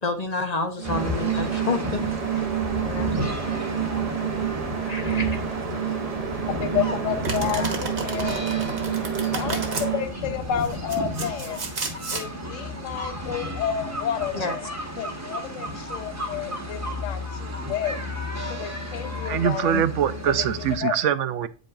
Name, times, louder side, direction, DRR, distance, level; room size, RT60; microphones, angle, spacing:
voice 1, 0.0-2.5 2.8-3.1 4.8-5.4 7.4-7.8 14.3-14.6 19.7-19.9, left 3 dB, 35° left, 0.8 m, -29 dB
sound 1, 0.8-20.8, left 1 dB, 15° right, 1.0 m, -33 dB
sound 2, 0.8-10.1, right 9 dB, 35° right, 0.7 m, -28 dB
voice 2, 5.7-8.4 9.1-11.6 12.1-14.7 15.0-18.0 18.3-19.8 20.2-20.9, left 9 dB, 75° left, 1.0 m, -31 dB
Domestic sounds home sounds, 7.2-9.9 10.6-12.3, right 3 dB, 55° right, 1.4 m, -32 dB
voice 3, 19.2-21.5, right 10 dB, 70° right, 0.9 m, -24 dB
8.9 x 5.2 x 2.4 m
omnidirectional pair, 1.3 m